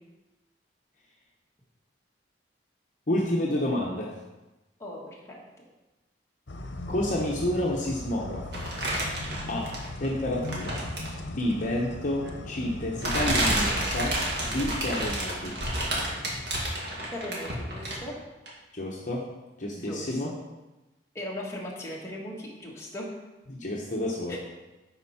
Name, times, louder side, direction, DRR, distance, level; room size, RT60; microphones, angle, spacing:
voice 1, 3.1-4.1 6.9-8.6 9.4-9.7 10.0-10.8 11.3-15.6 18.7-19.2 19.6-20.3 23.5-24.4, left 1 dB, 45° left, -2 dB, 0.9 m, -29 dB
voice 2, 4.8-5.4 16.0-16.1 17.1-18.1 19.7-20.2 21.1-23.1 24.3-24.4, left 1 dB, 15° left, -4 dB, 1.5 m, -38 dB
sound 1, 6.5-13.5, left 2 dB, 80° left, 0.8 m, -38 dB
sound 2, 8.5-10.1 10.4-11.2 12.2-12.3 13.0-18.1 18.5-18.6, right 1 dB, 65° right, 1.9 m, -29 dB
10.0 x 4.5 x 4.3 m, 1.1 s
head